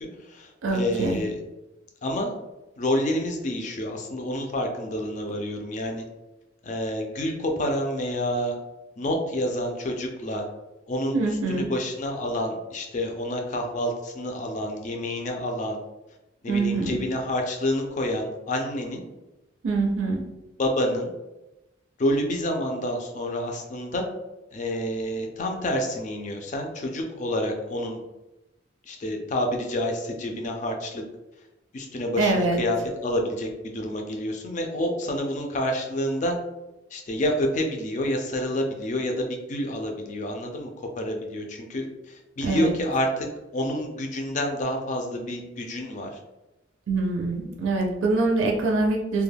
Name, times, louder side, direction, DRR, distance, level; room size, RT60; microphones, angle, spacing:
voice 1, 0.0-1.4 2.0-2.3 2.8-6.0 6.6-8.6 9.0-10.4 10.9-11.2 11.5-15.8 16.4-19.0 20.6-21.1 22.0-24.0 24.5-28.0 28.9-31.0 31.7-36.4 36.9-43.3 43.5-46.2, left 1 dB, 40° left, 3 dB, 0.4 m, -28 dB
voice 2, 0.6-1.2 11.1-11.7 16.5-17.0 19.6-20.2 32.2-32.6 42.4-42.7 46.9-49.2, right 3 dB, 80° right, 1 dB, 0.4 m, -24 dB
2.2 x 2.1 x 3.3 m, 1.0 s
head